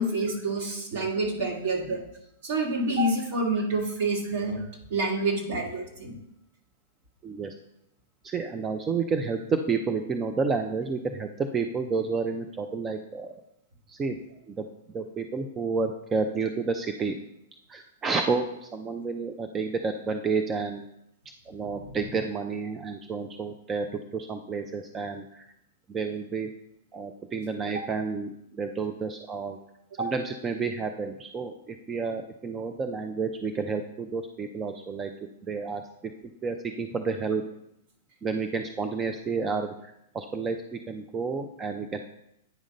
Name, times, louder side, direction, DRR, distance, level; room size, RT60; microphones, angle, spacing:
voice 1, 0.0-2.0 2.4-4.6 4.9-6.2 21.9-22.0 30.0-30.1, right 2 dB, 60° right, -1 dB, 2.3 m, -28 dB
voice 2, 4.2-4.7 7.2-7.5 8.2-13.4 13.9-14.2 14.5-14.7 14.9-17.2 17.7-20.9 21.5-25.5 25.9-26.5 26.9-29.6 30.0-35.1 35.5-35.8 36.4-37.4 38.2-42.0, right 4 dB, 20° right, 6 dB, 0.5 m, -30 dB
9.1 x 3.7 x 5.3 m, 0.80 s
hypercardioid pair, 120°, 0 cm